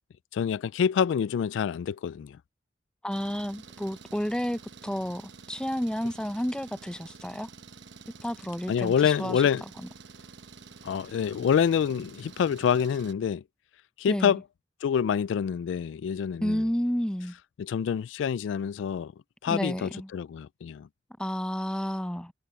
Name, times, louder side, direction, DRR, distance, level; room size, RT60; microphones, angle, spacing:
voice 1, 0.3-2.4 8.7-9.6 10.8-13.4 14.0-14.4 14.8-16.6 17.6-19.1 19.4-20.9, left 7 dB, 85° left, 0.3 m, -26 dB
voice 2, 3.0-7.5 8.2-9.4 9.8-9.9 14.0-14.4 16.4-17.4 19.5-20.1 21.2-22.3, equal, 5° left, 0.5 m, -31 dB
Engine, 3.1-13.1, right 5 dB, 75° right, 1.0 m, -49 dB
head